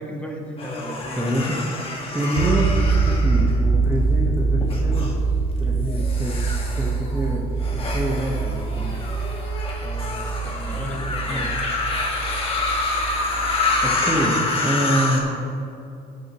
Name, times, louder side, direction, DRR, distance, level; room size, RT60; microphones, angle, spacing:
voice 1, 0.0-1.5 9.8-11.5, equal, 5° left, 0 dB, 1.5 m, -34 dB
sound 1, 0.6-4.0 4.6-5.1 5.8-15.2, left 3 dB, 35° left, 1.6 m, -27 dB
voice 2, 1.2-1.6 2.1-2.8 3.0-5.2 5.6-6.5 6.8-9.1 10.8-11.5 13.8-15.4, equal, 15° right, -4 dB, 1.1 m, -26 dB
sound 2, 2.4-14.3, right 4 dB, 90° right, 0.6 m, -24 dB
15.0 x 6.3 x 3.0 m, 2.6 s
cardioid pair, 110°, 17 cm